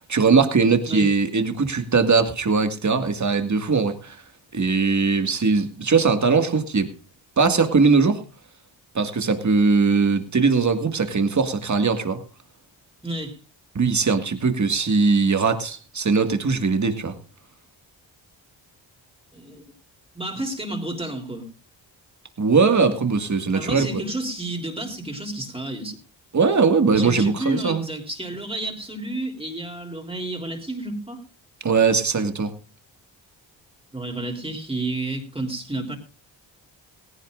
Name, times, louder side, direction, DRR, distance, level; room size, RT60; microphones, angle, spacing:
voice 1, 0.1-4.2 4.5-6.9 7.4-8.2 8.9-12.2 13.8-17.2 22.4-23.9 26.3-27.9 31.6-32.5, right 4 dB, 40° right, 8 dB, 2.0 m, -20 dB
voice 2, 13.0-13.4 19.3-19.6 20.1-21.5 23.5-26.0 26.9-31.2 33.9-36.0, right 2 dB, 10° right, 2 dB, 3.4 m, -31 dB
17.5 x 16.0 x 2.5 m, 0.32 s
cardioid pair, 65°, 45 cm